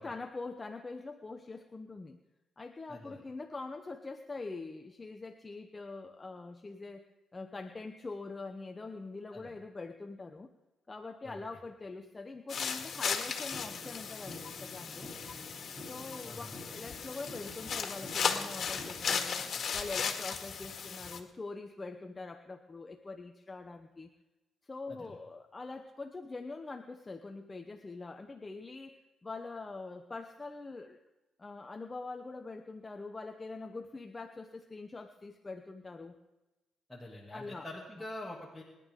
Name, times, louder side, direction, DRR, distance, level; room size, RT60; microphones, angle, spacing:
voice 1, 0.0-2.2 2.6-7.0 7.3-10.5 10.9-15.1 15.9-19.5 19.7-24.1 24.6-31.0 31.4-36.2 37.3-37.7, left 3 dB, 25° left, 5 dB, 1.0 m, -44 dB
voice 2, 2.9-3.2 9.3-9.6 11.2-11.4 16.2-16.6 24.9-25.2 36.9-38.6, left 1 dB, 5° left, -5 dB, 2.6 m, -45 dB
sound 1, 12.5-21.2, left 6 dB, 55° left, 2.2 m, -36 dB
sound 2, 13.5-19.5, left 1 dB, 25° right, 7.0 m, -49 dB
29.0 x 11.0 x 3.8 m, 1.1 s
cardioid pair, 85°, 0 cm